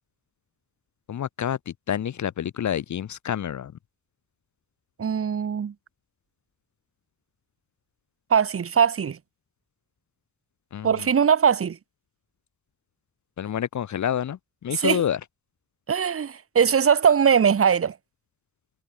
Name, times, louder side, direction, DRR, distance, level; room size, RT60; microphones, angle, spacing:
voice 1, 1.1-3.7 10.7-11.1 13.4-15.2, left 9 dB, 75° left, 0.7 m, -28 dB
voice 2, 5.0-5.7 8.3-9.2 10.8-11.8 14.7-15.0 15.9-17.9, right 7 dB, 50° right, 0.9 m, -21 dB
wide cardioid pair, 135°, 30 cm